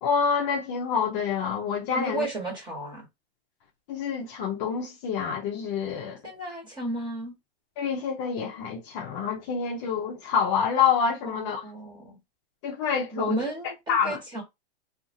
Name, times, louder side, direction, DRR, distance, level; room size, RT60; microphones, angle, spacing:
voice 1, 0.0-2.3 3.9-6.2 7.8-11.7 12.6-13.4 13.9-14.2, left 6 dB, 30° left, 0.5 m, -27 dB
voice 2, 1.9-3.0 6.2-7.3 11.3-12.2 13.1-14.4, right 2 dB, 15° right, 1.2 m, -33 dB
2.6 x 2.4 x 2.6 m
hypercardioid pair, 145°, 29 cm